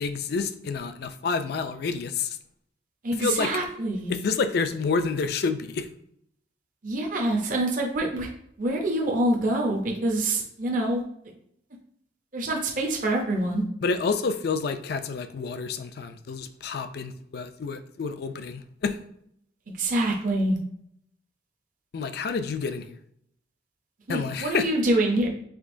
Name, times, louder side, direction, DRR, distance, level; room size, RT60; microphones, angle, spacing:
voice 1, 0.0-2.4 3.2-3.5 4.1-5.9 13.8-19.0 21.9-23.0 24.1-24.7, left 4 dB, 55° left, 10 dB, 0.3 m, -29 dB
voice 2, 3.0-4.1 6.8-8.3 8.6-11.0 12.3-13.6 19.7-20.6 24.1-25.3, right 1 dB, 45° right, 1 dB, 0.6 m, -25 dB
5.0 x 3.6 x 2.6 m, 0.73 s
head